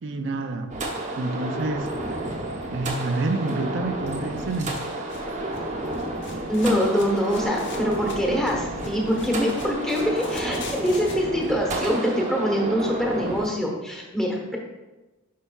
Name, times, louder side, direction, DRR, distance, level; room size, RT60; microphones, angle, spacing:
voice 1, 0.0-0.8 1.2-2.3 2.7-4.8, right 2 dB, 60° right, 6 dB, 0.5 m, -28 dB
sound 1, 0.7-13.5, right 1 dB, 35° right, 0.9 m, -31 dB
sound 2, 4.1-11.2, left 2 dB, 60° left, 1.0 m, -42 dB
voice 2, 6.5-14.6, equal, ahead, -1 dB, 1.1 m, -24 dB
9.6 x 5.6 x 2.4 m, 1.1 s
head